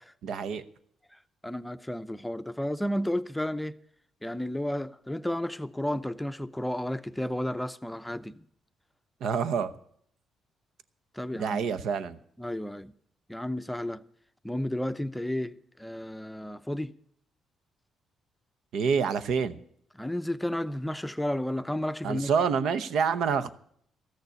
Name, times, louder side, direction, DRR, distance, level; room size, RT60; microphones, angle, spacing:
voice 1, 0.2-0.6 9.2-9.7 11.4-12.2 18.7-19.6 22.0-23.5, right 6 dB, 75° right, 0.8 m, -27 dB
voice 2, 1.4-3.8 4.2-8.4 11.1-11.7 12.4-12.9 13.3-14.0 14.4-17.0 19.9-22.3, left 1 dB, 5° left, 0.6 m, -32 dB
14.0 x 6.7 x 9.6 m
cardioid pair, 90°, 0 cm